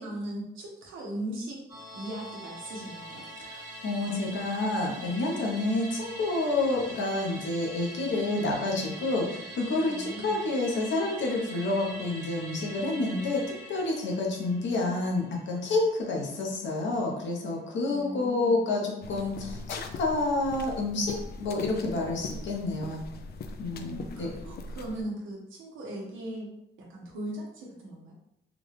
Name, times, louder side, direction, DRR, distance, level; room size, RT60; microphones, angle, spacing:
voice 1, 0.0-1.6 1.9-3.3 9.9-10.4 17.9-18.6 23.7-26.5 26.9-28.1, right 1 dB, 85° right, -2 dB, 1.1 m, -38 dB
Musical instrument, 1.7-16.4 16.7-16.8, right 1 dB, 15° right, 1.3 m, -44 dB
voice 2, 3.5-23.0 23.6-24.3, left 2 dB, 70° left, -1 dB, 1.0 m, -29 dB
sound 1, 19.0-25.0, left 3 dB, 55° left, 0.4 m, -41 dB
3.7 x 2.4 x 3.2 m, 0.82 s
cardioid pair, 90°, 20 cm